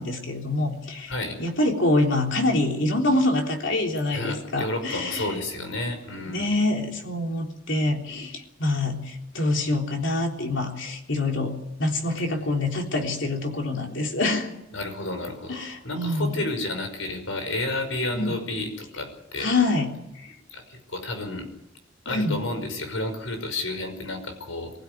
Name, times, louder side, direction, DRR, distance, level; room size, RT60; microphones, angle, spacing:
voice 1, 0.0-1.1 1.4-5.3 6.3-14.5 15.5-16.3 18.1-18.4 19.4-20.0 22.1-22.4, left 2 dB, 65° left, 2 dB, 3.6 m, -25 dB
voice 2, 1.1-1.4 4.1-6.5 14.7-19.5 20.5-21.5 22.1-24.7, left 2 dB, 90° left, 6 dB, 5.6 m, -31 dB
23.5 x 16.0 x 9.6 m, 0.86 s
head